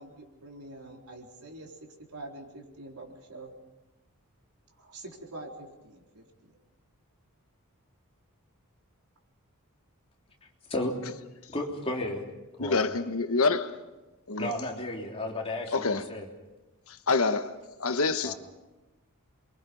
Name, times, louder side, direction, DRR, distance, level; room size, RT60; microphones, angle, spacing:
voice 1, 0.0-1.7 2.1-3.5 4.8-6.6, right 2 dB, 85° right, 4.1 m, -45 dB
voice 2, 11.5-12.2 12.6-12.8 14.4-16.3 18.2-18.4, left 1 dB, 25° left, 3.4 m, -33 dB
voice 3, 12.6-13.8 14.3-14.6 15.7-16.1 16.9-18.3, left 3 dB, 70° left, 1.2 m, -27 dB
28.0 x 23.0 x 5.3 m
head